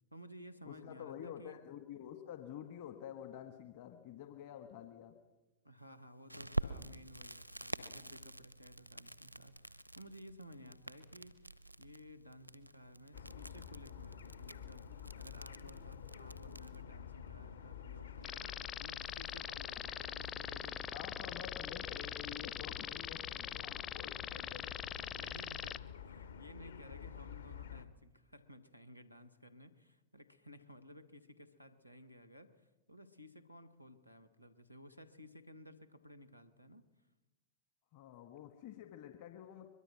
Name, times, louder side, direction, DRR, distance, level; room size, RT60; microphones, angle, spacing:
voice 1, 0.1-1.6 5.6-18.5 18.8-21.4 24.9-36.8, equal, 90° left, 8 dB, 1.7 m, -56 dB
voice 2, 0.6-5.2 20.9-24.7 37.9-39.7, left 10 dB, 50° left, 7 dB, 1.7 m, -49 dB
Crackle, 6.3-16.8, right 2 dB, 90° right, 0.9 m, -47 dB
sound 1, 13.1-27.9, left 8 dB, 65° left, 1.5 m, -50 dB
sound 2, 18.2-25.8, left 9 dB, 25° left, 0.7 m, -43 dB
23.0 x 22.5 x 6.1 m, 1.1 s
figure-of-eight pair, 90°, 0 cm